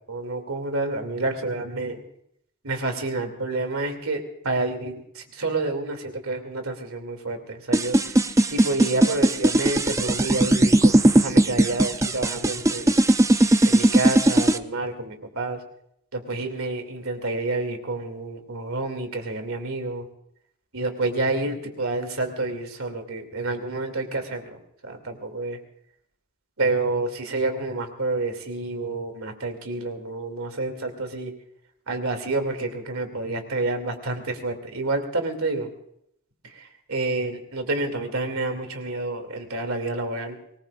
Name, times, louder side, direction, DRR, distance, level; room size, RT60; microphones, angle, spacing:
voice 1, 0.1-2.0 2.6-13.0 13.6-15.6 16.1-20.1 20.7-25.6 26.6-31.3 31.9-35.7 36.4-40.4, right 2 dB, 80° right, 6 dB, 2.7 m, -29 dB
sound 1, 7.7-14.6, right 1 dB, 15° right, 0.5 m, -18 dB
24.5 x 20.0 x 2.5 m, 0.72 s
head